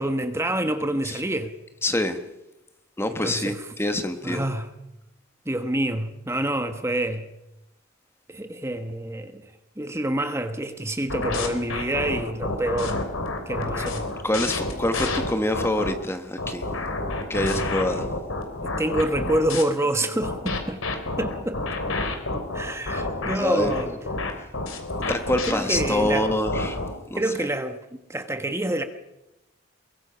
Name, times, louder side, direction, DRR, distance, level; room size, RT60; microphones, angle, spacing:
voice 1, 0.0-1.5 3.1-3.6 4.2-4.7 5.4-7.3 8.3-9.4 9.8-13.0 13.5-14.0 18.6-20.8 21.2-21.6 22.5-23.9 24.4-24.5 25.0-25.1 25.4-26.3 27.1-28.8, right 1 dB, 15° right, 8 dB, 1.3 m, -27 dB
voice 2, 1.8-2.2 3.0-4.4 14.2-16.6 17.3-18.1 22.9-23.0 23.3-24.0 25.1-26.8 27.1-27.2, left 1 dB, 10° left, 8 dB, 1.3 m, -26 dB
sound 1, 11.1-15.9 16.4-19.6 20.2-26.9, left 2 dB, 80° left, 3.4 m, -29 dB
23.0 x 22.5 x 5.7 m, 0.92 s
head